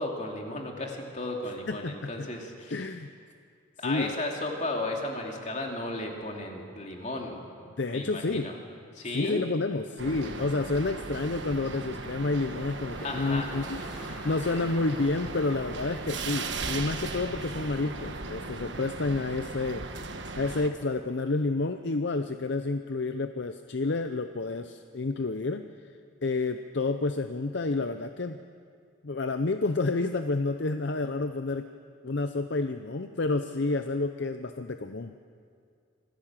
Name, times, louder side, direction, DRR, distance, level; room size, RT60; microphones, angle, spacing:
voice 1, 0.0-2.9 3.8-7.4 7.9-8.5 8.9-9.4 13.0-13.5, left 2 dB, 35° left, 0 dB, 2.8 m, -34 dB
voice 2, 1.7-2.3 2.7-3.1 3.8-4.1 7.8-8.5 9.1-13.9 14.2-19.9 20.3-25.6 26.2-28.4 29.0-31.7 32.0-35.1, left 3 dB, 55° left, 8 dB, 0.6 m, -29 dB
sound 1, 10.0-20.7, right 3 dB, 60° right, 1.4 m, -37 dB
Engine, 12.4-18.5, equal, 10° left, 5.5 m, -48 dB
26.0 x 16.5 x 7.5 m, 2.3 s
head